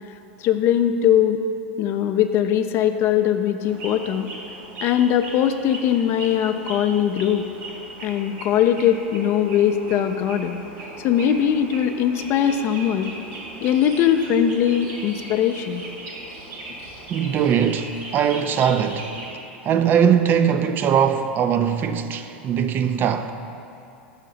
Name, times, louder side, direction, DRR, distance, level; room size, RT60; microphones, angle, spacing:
voice 1, 0.4-1.4 1.8-4.3 4.8-7.4 8.0-10.6 11.0-13.1 13.6-15.8, left 9 dB, 45° left, 0.4 m, -20 dB
sound 1, 3.6-19.3, right 2 dB, 65° right, 1.3 m, -38 dB
voice 2, 17.1-19.1 19.6-23.3, right 8 dB, 35° right, 0.3 m, -20 dB
6.4 x 5.5 x 3.9 m
hypercardioid pair, 95°, 6 cm